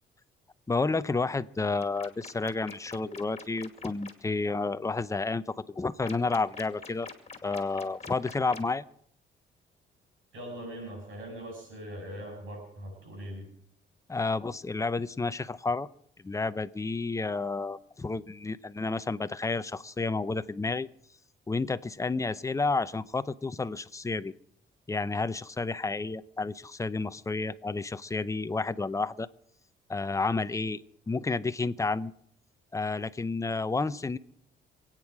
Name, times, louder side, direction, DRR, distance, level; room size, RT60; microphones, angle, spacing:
voice 1, 0.7-7.1 7.4-8.8 14.1-15.9 16.2-20.9 21.5-24.3 24.9-29.3 29.9-30.8 31.1-32.1 32.7-34.2, left 3 dB, 15° left, 13 dB, 0.7 m, -30 dB
sound 1, 1.8-4.1 6.0-8.8, left 5 dB, 35° left, 2.3 m, -45 dB
voice 2, 10.3-13.4, equal, 75° right, 1 dB, 7.4 m, -41 dB
27.0 x 9.1 x 4.8 m, 0.67 s
cardioid pair, 90°, 20 cm